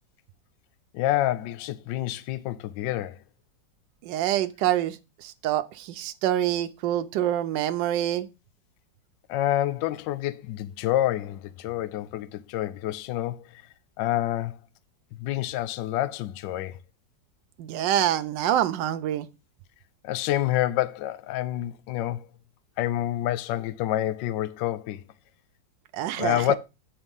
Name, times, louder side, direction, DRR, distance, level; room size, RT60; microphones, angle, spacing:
voice 1, 0.9-3.2 9.3-13.6 14.0-14.6 15.2-16.8 20.0-22.3 22.8-25.0 26.2-26.6, left 13 dB, 80° left, 1.2 m, -28 dB
voice 2, 4.0-8.3 17.6-19.3 25.9-26.6, right 12 dB, 75° right, 1.2 m, -26 dB
8.9 x 4.4 x 5.4 m
omnidirectional pair, 2.0 m